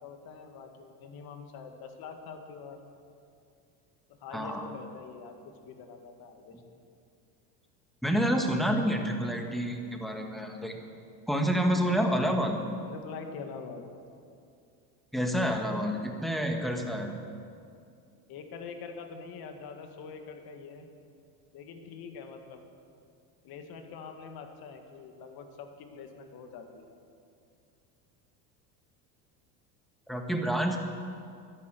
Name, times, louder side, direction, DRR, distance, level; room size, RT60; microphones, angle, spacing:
voice 1, 0.0-2.8 4.2-6.6 12.9-13.8 18.3-20.9 21.5-22.6 23.4-26.9, left 5 dB, 55° left, 5 dB, 2.0 m, -44 dB
voice 2, 4.3-4.7 8.0-10.7 11.3-12.6 15.1-17.2 30.1-30.8, equal, ahead, 3 dB, 1.9 m, -28 dB
12.5 x 11.0 x 7.8 m, 2.4 s
supercardioid pair, 95°, 44 cm